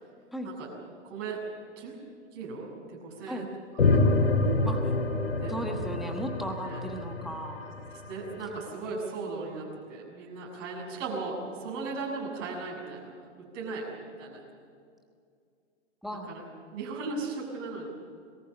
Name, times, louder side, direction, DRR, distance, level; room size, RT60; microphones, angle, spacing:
voice 1, 1.0-1.5 1.8-2.0 2.3-3.5 3.8-3.9 5.4-5.5 6.6-6.8 8.1-14.4 16.3-16.4 16.7-17.9, right 4 dB, 35° right, -2 dB, 7.2 m, -37 dB
sound 1, 3.8-8.5, left 2 dB, 85° left, 2.7 m, -27 dB
voice 2, 5.5-7.7 16.0-16.3, equal, ahead, 3 dB, 1.3 m, -36 dB
22.0 x 14.5 x 8.8 m, 2.3 s
hypercardioid pair, 130°, 37 cm